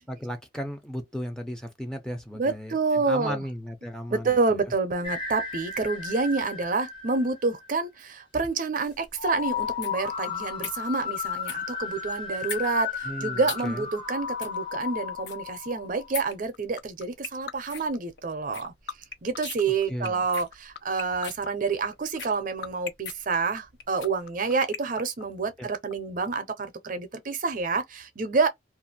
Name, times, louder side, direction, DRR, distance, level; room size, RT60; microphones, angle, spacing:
voice 1, 0.1-4.6 13.0-13.9 19.9-20.2 25.6-25.7, equal, 5° left, 0.5 m, -35 dB
voice 2, 2.4-3.4 4.1-18.7 19.2-28.5, right 4 dB, 45° right, 0.5 m, -28 dB
sound 1, 5.0-7.8 9.2-16.2, left 6 dB, 30° left, 0.9 m, -34 dB
sound 2, 8.8-24.2, left 6 dB, 80° left, 0.8 m, -43 dB
sound 3, 16.3-25.9, left 7 dB, 60° left, 0.4 m, -36 dB
2.5 x 2.5 x 2.7 m
head